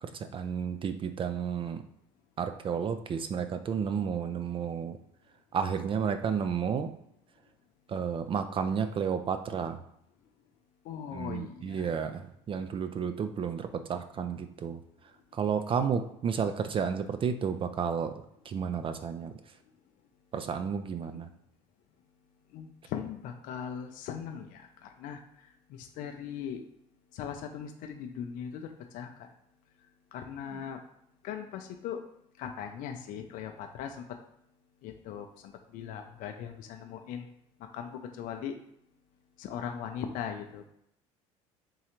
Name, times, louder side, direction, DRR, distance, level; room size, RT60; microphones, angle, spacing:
voice 1, 0.0-1.8 2.4-5.0 5.5-6.9 7.9-9.8 11.1-12.2 12.5-14.8 15.3-19.3 20.3-21.3, right 7 dB, 35° right, 8 dB, 0.3 m, -32 dB
voice 2, 10.8-11.9 21.0-21.2 22.5-26.6 27.1-29.1 30.1-30.8 31.2-32.0 32.4-34.1 34.8-37.3 37.7-38.6 39.4-40.6, left 8 dB, 60° left, 5 dB, 0.5 m, -39 dB
3.7 x 3.1 x 3.0 m, 0.74 s
hypercardioid pair, 70°, 16 cm